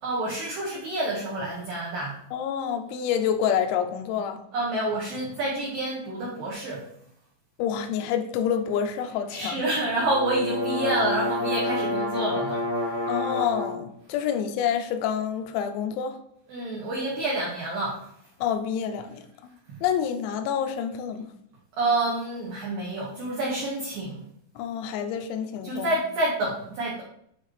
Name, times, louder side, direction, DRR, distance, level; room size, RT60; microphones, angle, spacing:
voice 1, 0.0-2.2 4.5-6.8 9.3-13.0 16.5-18.0 21.8-24.2 25.6-27.0, right 2 dB, 75° right, -4 dB, 2.1 m, -28 dB
voice 2, 2.3-4.4 7.6-9.7 13.1-16.2 18.4-19.3 19.8-21.3 24.6-26.0, left 8 dB, 85° left, 7 dB, 2.7 m, -28 dB
sound 1, 9.9-13.8, left 1 dB, 60° left, 1.5 m, -28 dB
9.1 x 4.1 x 3.2 m, 0.72 s
omnidirectional pair, 5.9 m